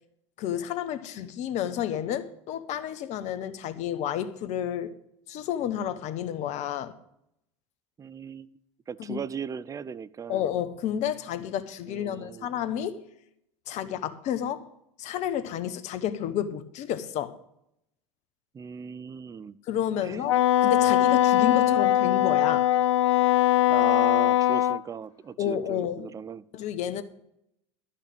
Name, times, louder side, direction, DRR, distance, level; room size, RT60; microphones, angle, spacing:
voice 1, 0.4-4.9 5.3-6.9 9.0-9.2 10.3-13.0 13.7-14.7 15.0-17.4 19.7-22.7 25.4-26.1 26.5-27.0, left 10 dB, 50° left, 1.1 m, -30 dB
voice 2, 8.0-8.5 8.9-10.4 11.9-12.5 18.5-19.6 20.0-20.3 23.7-26.4, right 7 dB, 20° right, 0.5 m, -37 dB
Wind instrument woodwind instrument, 20.2-24.8, left 13 dB, 80° left, 0.4 m, -21 dB
12.0 x 5.8 x 8.6 m
hypercardioid pair, 85°, 15 cm